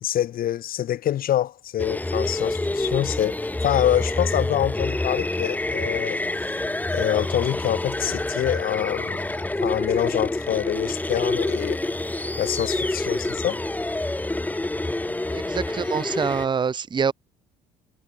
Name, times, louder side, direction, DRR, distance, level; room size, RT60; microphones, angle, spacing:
voice 1, 0.0-6.2 6.9-11.8 12.4-13.6, left 12 dB, 55° left, 1.3 m, -26 dB
sound 1, 1.8-16.5, left 2 dB, 10° left, 1.2 m, -27 dB
voice 2, 15.3-17.1, right 6 dB, 25° right, 0.8 m, -25 dB
hypercardioid pair, 70°, 18 cm